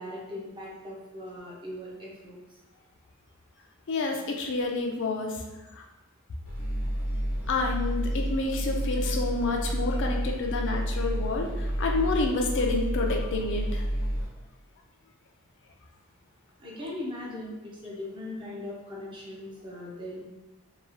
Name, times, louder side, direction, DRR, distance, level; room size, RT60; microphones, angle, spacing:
voice 1, 0.0-2.4 16.6-20.2, left 1 dB, 20° right, -5 dB, 0.6 m, -39 dB
voice 2, 3.9-5.4 5.8-5.9 7.5-13.9, left 3 dB, 55° left, 2 dB, 0.4 m, -29 dB
sound 1, 6.5-14.3, equal, 90° left, 1.0 m, -30 dB
2.9 x 2.3 x 2.5 m, 1.0 s
head